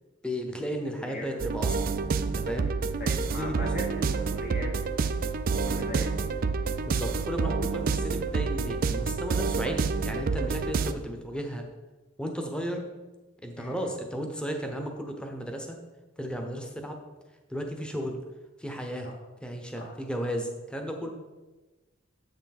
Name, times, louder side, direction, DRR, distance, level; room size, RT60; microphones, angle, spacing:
voice 1, 0.2-1.9 2.2-2.7 3.1-3.5 6.8-11.7 12.2-12.8 13.4-15.8 16.2-17.0 17.5-18.2 18.6-19.1 19.4-21.1, equal, 5° left, 3 dB, 0.8 m, -34 dB
voice 2, 0.9-1.3 1.6-1.8 2.5-5.3 5.6-6.1 13.6-13.9 19.0-19.2 19.8-20.0, left 1 dB, 45° left, -2 dB, 0.9 m, -40 dB
sound 1, 1.4-10.9, right 4 dB, 45° right, 0.3 m, -28 dB
7.8 x 6.4 x 4.2 m, 1.2 s
head